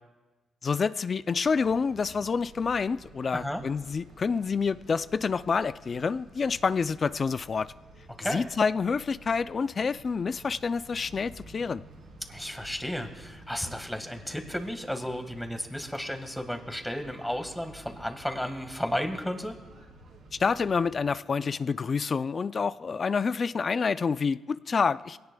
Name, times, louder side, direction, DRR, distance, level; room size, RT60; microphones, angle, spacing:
voice 1, 0.6-7.7 8.3-11.8 20.4-25.2, left 5 dB, 45° left, 15 dB, 0.4 m, -28 dB
sound 1, 1.4-21.1, right 2 dB, 75° right, 4.8 m, -52 dB
voice 2, 12.2-19.5, equal, 5° left, 6 dB, 1.6 m, -33 dB
22.5 x 17.5 x 2.3 m, 1.2 s
cardioid pair, 90°, 0 cm